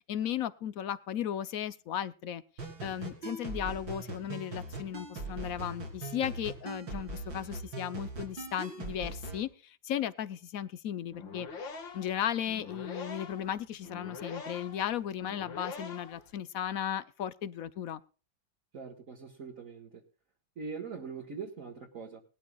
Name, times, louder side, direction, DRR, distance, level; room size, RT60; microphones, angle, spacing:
voice 1, 0.1-2.4 2.8-11.5 11.9-18.0, left 10 dB, 60° left, 1.0 m, -35 dB
sound 1, 2.6-9.4, right 2 dB, 85° right, 4.1 m, -41 dB
sound 2, 11.0-16.3, left 4 dB, 90° left, 2.5 m, -44 dB
voice 2, 18.7-20.0 20.6-22.2, right 5 dB, 45° right, 2.1 m, -42 dB
21.0 x 12.5 x 2.4 m
omnidirectional pair, 2.0 m